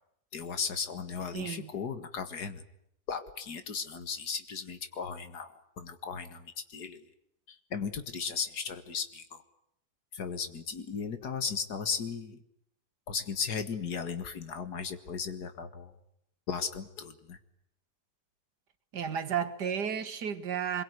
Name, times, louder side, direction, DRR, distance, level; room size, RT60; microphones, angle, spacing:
voice 1, 0.3-2.6 3.1-7.0 7.5-9.4 10.1-12.4 13.1-15.9 16.5-17.4, left 6 dB, 75° left, 2.2 m, -36 dB
voice 2, 1.3-1.7 18.9-20.8, right 8 dB, 90° right, 2.2 m, -33 dB
25.0 x 22.5 x 9.7 m
omnidirectional pair, 1.7 m